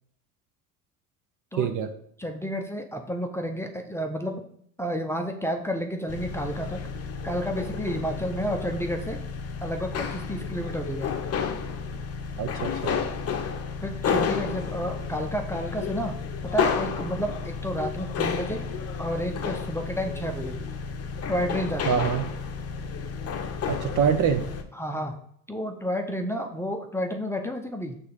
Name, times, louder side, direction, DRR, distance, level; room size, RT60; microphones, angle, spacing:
voice 1, 1.5-1.9 12.4-13.0 21.9-22.2 23.7-24.5, right 7 dB, 45° right, 8 dB, 0.8 m, -25 dB
voice 2, 2.2-4.4 4.8-6.8 7.2-9.2 9.6-11.1 13.8-16.1 16.4-18.6 19.0-20.7 21.3-22.1 24.8-25.2 25.5-28.0, equal, 5° left, 4 dB, 0.8 m, -31 dB
sound 1, 6.1-24.6, left 6 dB, 35° left, 0.9 m, -31 dB
6.4 x 3.5 x 5.3 m, 0.65 s
hypercardioid pair, 70°, 44 cm